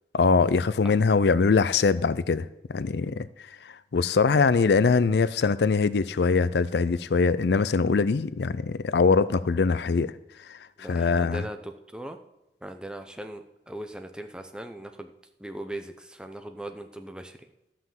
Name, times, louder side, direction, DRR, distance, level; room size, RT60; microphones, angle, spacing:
voice 1, 0.1-3.3 3.6-10.1 10.5-11.4, left 4 dB, 75° left, 17 dB, 0.4 m, -23 dB
voice 2, 10.8-12.2 12.6-15.1 15.4-17.4, right 1 dB, 5° right, 6 dB, 0.7 m, -39 dB
13.0 x 5.9 x 7.3 m, 0.93 s
head